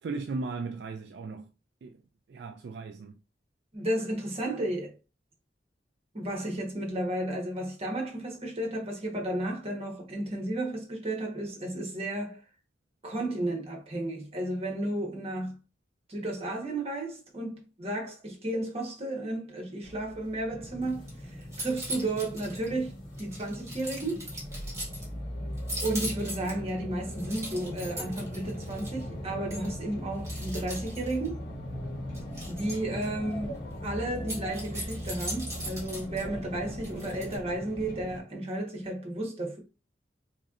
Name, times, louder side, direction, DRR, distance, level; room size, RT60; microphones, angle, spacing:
voice 1, 0.0-1.5 1.8-2.0 2.3-3.2, right 3 dB, 65° right, 0.3 m, -36 dB
voice 2, 3.7-4.9 6.1-12.4 13.0-15.5 16.1-21.1 21.6-24.3 25.8-31.4 32.5-39.6, right 1 dB, 35° right, 1.2 m, -33 dB
sound 1, 19.8-38.2, equal, 90° left, 1.5 m, -40 dB
sound 2, 20.5-38.2, left 1 dB, 5° left, 0.5 m, -45 dB
sound 3, 20.9-21.1 21.4-22.7 23.2-25.1 25.6-26.7 27.1-29.0 29.5-29.7 30.2-31.3 32.1-33.1 34.2-36.2 36.8-37.4, right 1 dB, 15° right, 1.4 m, -39 dB
3.7 x 3.1 x 2.5 m
head